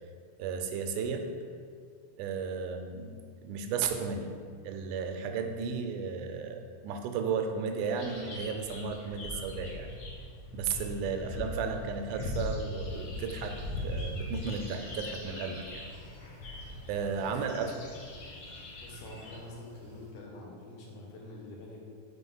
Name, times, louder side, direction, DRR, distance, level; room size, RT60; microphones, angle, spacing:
voice 1, 0.4-1.3 2.2-4.3 4.6-9.9 10.5-15.8 16.9-17.7, right 5 dB, 90° right, 5 dB, 2.1 m, -34 dB
sound 1, 8.0-19.4, left 2 dB, 60° left, 1.5 m, -40 dB
sound 2, 12.9-20.1, right 2 dB, 60° right, 2.0 m, -54 dB
voice 2, 17.2-17.6 18.8-21.8, left 1 dB, 90° left, -2 dB, 2.6 m, -46 dB
5.1 x 4.1 x 5.4 m, 2.1 s
omnidirectional pair, 3.5 m